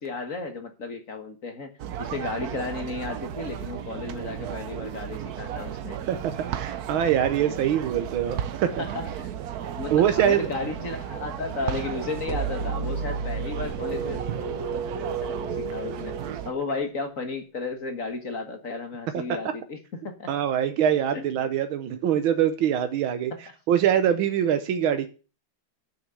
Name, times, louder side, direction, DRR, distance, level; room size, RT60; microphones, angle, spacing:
voice 1, 0.0-6.0 8.8-9.4 9.8-14.2 15.2-19.8 20.0-20.3 21.1-21.5, left 3 dB, 45° left, 1.8 m, -34 dB
sound 1, 1.8-16.5, right 9 dB, 60° right, 1.1 m, -34 dB
voice 2, 6.1-8.8 9.9-10.5 20.3-23.3 23.7-25.1, right 9 dB, 85° right, 1.7 m, -24 dB
sound 2, 12.3-17.0, right 4 dB, 35° right, 1.9 m, -32 dB
9.9 x 6.2 x 7.7 m
omnidirectional pair, 2.2 m